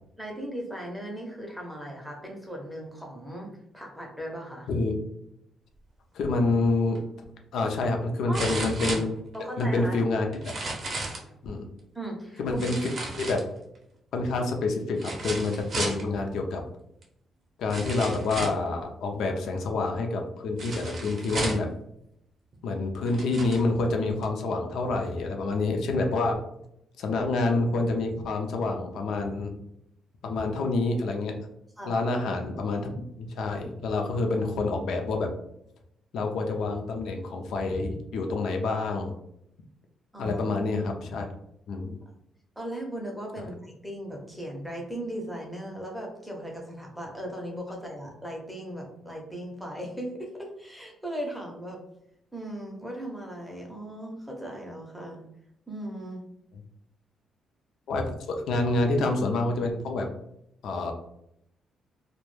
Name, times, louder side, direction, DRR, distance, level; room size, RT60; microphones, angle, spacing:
voice 1, 0.2-4.7 8.3-8.4 9.3-10.0 11.9-12.6 31.8-32.0 40.1-40.4 42.6-51.8 52.3-55.2 55.7-56.3, right 1 dB, ahead, -1 dB, 0.6 m, -37 dB
voice 2, 6.1-7.0 7.5-9.1 9.6-10.5 11.4-11.7 12.4-12.8 13.2-13.4 14.1-16.6 17.6-21.7 22.6-26.4 27.0-29.5 30.2-31.3 31.9-32.9 33.2-35.3 36.1-39.1 40.2-41.3 41.7-42.0 57.9-60.1 60.6-60.9, left 3 dB, 70° left, 3 dB, 0.4 m, -27 dB
sound 1, 6.9-7.0 8.3-9.6 10.3-11.3 12.6-13.8 15.0-16.0 17.0-17.1 17.7-18.7 20.6-21.7 22.5-22.6 23.0-23.6 24.2-24.3, right 2 dB, 45° right, 0.6 m, -33 dB
2.2 x 2.1 x 3.1 m, 0.78 s
cardioid pair, 150°, 0 cm